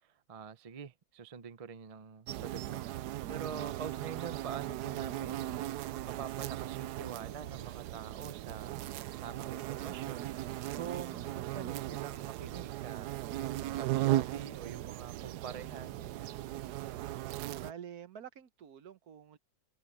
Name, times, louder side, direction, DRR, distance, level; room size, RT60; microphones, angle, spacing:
voice 1, 0.0-5.6 6.0-10.3 10.7-13.1 13.7-16.4, right 7 dB, 40° right, 0.5 m, -45 dB
sound 1, 2.3-17.7, right 14 dB, 90° right, 1.2 m, -37 dB
voice 2, 17.6-19.4, right 8 dB, 70° right, 1.4 m, -48 dB
omnidirectional pair, 1.7 m